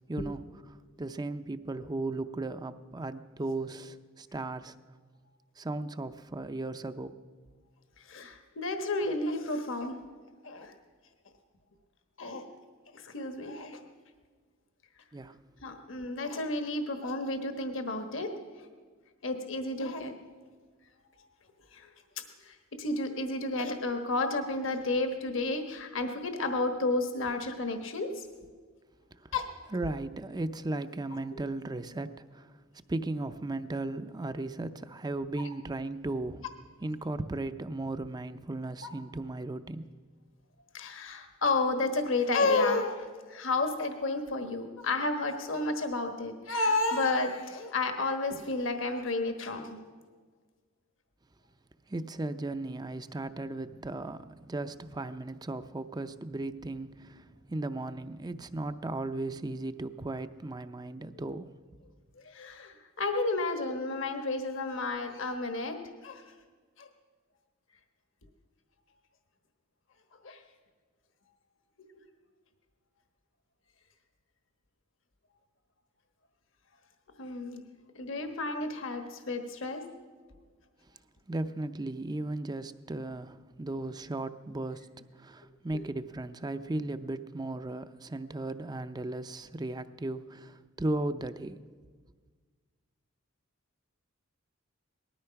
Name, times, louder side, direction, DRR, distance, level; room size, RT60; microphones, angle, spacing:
voice 1, 0.1-0.4 1.0-4.7 5.6-7.1 15.1-15.4 29.2-29.3 29.7-32.6 32.9-36.4 36.8-39.9 51.9-61.5 81.3-91.6, right 2 dB, 20° right, 0.5 m, -36 dB
voice 2, 8.0-10.0 10.4-10.7 12.2-12.4 12.9-13.8 15.6-18.3 19.2-20.1 21.7-21.9 22.4-28.3 29.3-29.5 31.3-31.4 40.7-49.8 62.2-65.8 66.0-66.2 66.8-66.9 70.2-70.4 77.2-77.6 77.9-79.8, left 2 dB, 65° left, 1.3 m, -31 dB
19.0 x 13.0 x 5.8 m
head